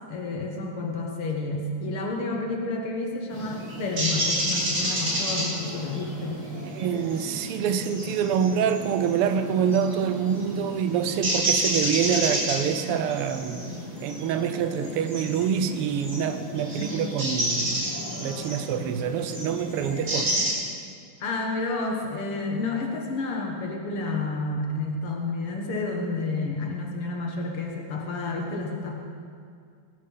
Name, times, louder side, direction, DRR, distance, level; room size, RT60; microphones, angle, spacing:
voice 1, 0.1-6.4 16.8-16.9 21.2-28.9, left 3 dB, 85° left, 1 dB, 2.4 m, -30 dB
sound 1, 3.3-20.5, right 1 dB, 50° right, 4.3 m, -30 dB
voice 2, 6.7-13.7 14.0-17.8 18.2-20.4, right 8 dB, 85° right, 10 dB, 1.7 m, -26 dB
21.0 x 10.5 x 5.5 m, 2.2 s
omnidirectional pair, 2.4 m